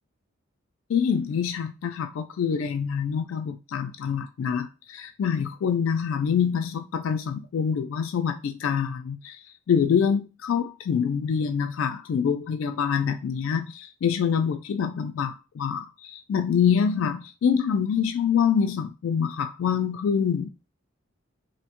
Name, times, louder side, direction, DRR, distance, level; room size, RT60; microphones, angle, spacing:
voice 1, 0.9-9.4 9.7-20.5, left 7 dB, 70° left, 0.3 m, -25 dB
2.7 x 2.1 x 2.9 m
head